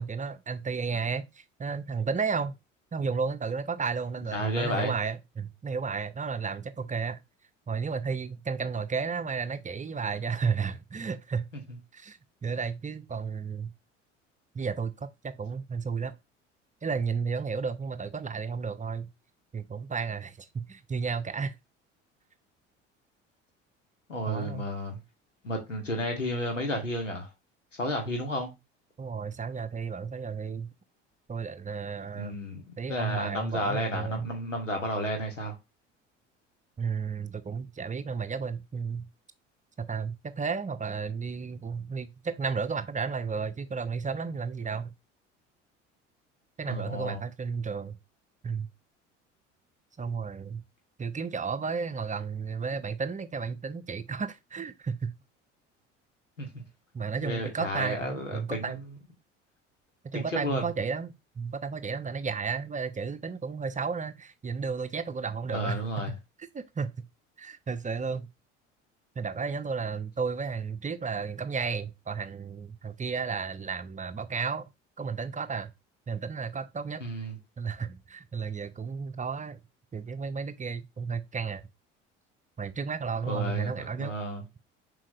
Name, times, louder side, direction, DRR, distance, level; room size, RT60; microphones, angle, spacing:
voice 1, 0.0-2.6 2.9-7.2 7.7-11.5 11.9-13.7 14.5-16.1 16.8-19.1 19.5-21.6 24.3-24.7 29.0-30.7 31.3-32.4 32.8-34.3 36.8-39.1 39.8-44.9 46.6-48.0 48.4-48.7 50.0-50.6 51.0-55.1 56.9-58.8 60.0-66.2 66.5-66.9 67.4-68.3 69.2-74.7 75.0-75.7 76.1-77.0 77.6-79.6 79.9-81.6 82.6-84.1, right 5 dB, 20° right, 0.8 m, -33 dB
voice 2, 4.3-4.9 24.1-25.0 25.4-27.3 27.8-28.5 32.1-35.5 46.7-47.2 56.4-56.6 57.2-59.0 60.1-60.6 65.5-66.1 77.0-77.4 83.2-84.4, equal, 85° left, 2.2 m, -32 dB
7.5 x 5.0 x 3.1 m
figure-of-eight pair, 60°, 36 cm